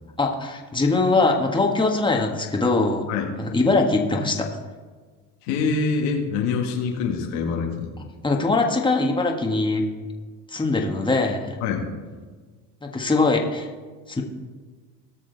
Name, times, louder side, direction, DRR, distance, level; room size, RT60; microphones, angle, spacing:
voice 1, 0.2-3.1 3.4-4.5 8.2-9.8 10.5-11.6 12.8-13.7 14.1-14.2, left 3 dB, 10° left, 1 dB, 1.6 m, -22 dB
voice 2, 5.4-7.9 11.6-11.9, left 5 dB, 80° left, 1 dB, 1.8 m, -25 dB
18.5 x 6.2 x 4.0 m, 1.5 s
supercardioid pair, 80°, 42 cm